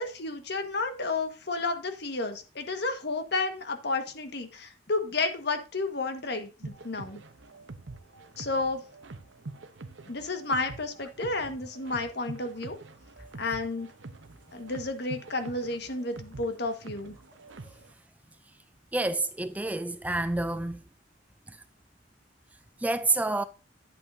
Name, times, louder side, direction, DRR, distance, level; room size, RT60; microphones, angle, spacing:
voice 1, 0.0-7.2 8.4-8.8 10.1-12.8 13.4-13.9 14.5-17.1, left 3 dB, 60° left, 1.5 m, -31 dB
sound 1, 6.6-17.9, right 3 dB, 85° right, 0.9 m, -46 dB
voice 2, 18.9-20.8 21.5-21.6 22.8-23.4, right 2 dB, 10° right, 0.3 m, -28 dB
10.0 x 8.3 x 2.7 m
head